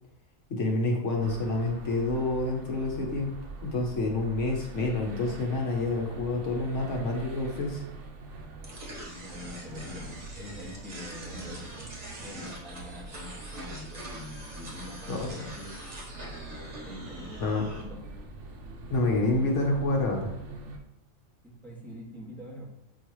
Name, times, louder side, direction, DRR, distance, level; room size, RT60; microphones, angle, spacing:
voice 1, 0.5-3.3 3.6-7.8 15.1-15.4 17.4-17.7 18.9-20.3, left 2 dB, 70° left, 0 dB, 1.3 m, -28 dB
sound 1, 1.2-20.8, right 3 dB, 65° right, 1.2 m, -44 dB
sound 2, 8.6-17.8, right 1 dB, 35° right, 1.3 m, -44 dB
voice 2, 9.0-15.8 16.9-18.0 21.4-22.7, left 1 dB, ahead, -5 dB, 1.8 m, -44 dB
7.6 x 4.5 x 3.1 m, 0.80 s
omnidirectional pair, 1.3 m